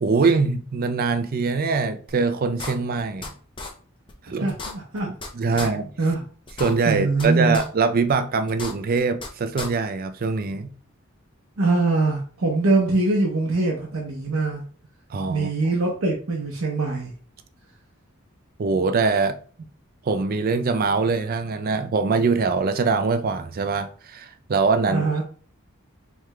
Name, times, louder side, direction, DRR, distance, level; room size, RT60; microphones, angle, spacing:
voice 1, 0.0-3.3 4.3-4.5 5.3-5.9 6.6-10.7 15.1-15.5 18.6-19.4 20.0-25.2, right 4 dB, 45° right, 0.4 m, -23 dB
sound 1, 2.1-2.2 2.6-3.3 3.6-3.7 4.1-4.2 4.5-5.3 5.6-5.7 6.1-6.2 6.5-7.3 7.5-7.7 8.1-8.2 8.5-9.3 9.6-9.7, left 3 dB, 25° left, 0.7 m, -33 dB
voice 2, 4.4-5.1 5.5-5.7 6.0-6.2 6.8-7.6 11.6-14.6 15.3-17.1 24.9-25.2, right 3 dB, 80° right, 0.8 m, -23 dB
4.6 x 3.5 x 2.2 m
head